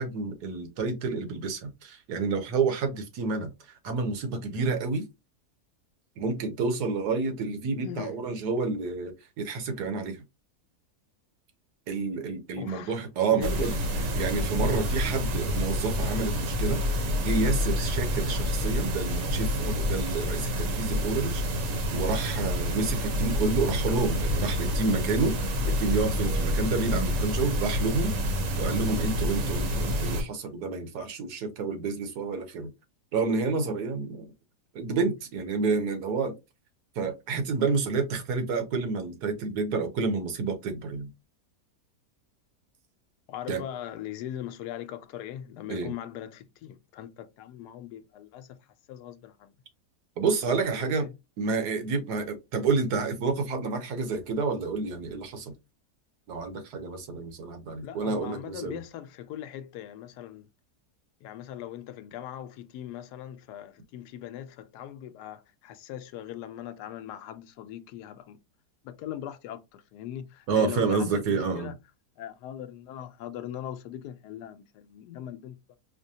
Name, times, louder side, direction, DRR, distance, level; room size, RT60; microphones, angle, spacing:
voice 1, 0.0-5.0 6.2-10.2 11.9-21.4 21.9-28.1 28.6-32.7 33.1-34.3 34.7-36.3 36.9-41.1 43.5-43.6 45.7-45.9 50.2-51.1 51.4-55.5 56.3-58.8 70.5-71.7, right 4 dB, 80° right, 1.4 m, -29 dB
voice 2, 7.8-8.2 12.6-13.0 13.3-13.8 43.3-48.6 48.9-49.5 50.7-51.1 57.8-60.5 61.2-68.4 68.8-71.8 72.2-75.8, left 11 dB, 80° left, 1.1 m, -40 dB
sound 1, 13.4-30.2, left 1 dB, 60° right, 1.1 m, -28 dB
4.9 x 2.1 x 2.7 m
omnidirectional pair, 1.7 m